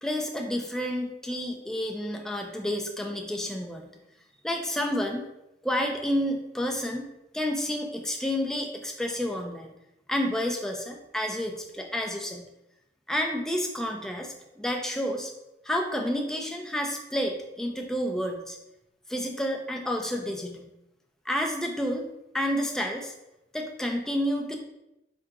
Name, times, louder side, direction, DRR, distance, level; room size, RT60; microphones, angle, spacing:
voice 1, 0.0-3.9 4.4-5.2 5.6-7.1 7.3-9.7 10.1-12.4 13.1-15.3 15.6-18.6 19.1-20.7 21.3-22.1 22.3-23.1 23.5-24.6, equal, 5° left, 1 dB, 0.4 m, -30 dB
4.6 x 2.8 x 3.6 m, 0.87 s
head